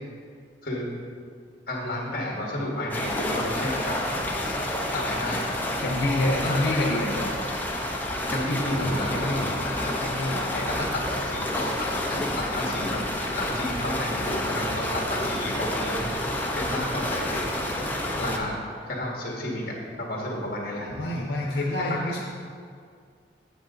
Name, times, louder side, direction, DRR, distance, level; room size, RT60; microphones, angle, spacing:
voice 1, 1.7-4.0 4.9-5.6 6.2-6.8 8.3-9.3 9.7-9.9 10.7-13.0 13.3-16.2 16.5-17.5 18.2-18.6 18.8-21.1 21.4-22.2, left 1 dB, 55° left, -3 dB, 2.0 m, -32 dB
sound 1, 2.9-18.4, left 1 dB, 10° left, 0.8 m, -29 dB
voice 2, 5.8-7.3 8.3-9.5 10.0-10.8 18.2-18.5 20.9-22.2, left 1 dB, 90° left, -3 dB, 0.9 m, -28 dB
8.3 x 7.8 x 3.9 m, 2.1 s
head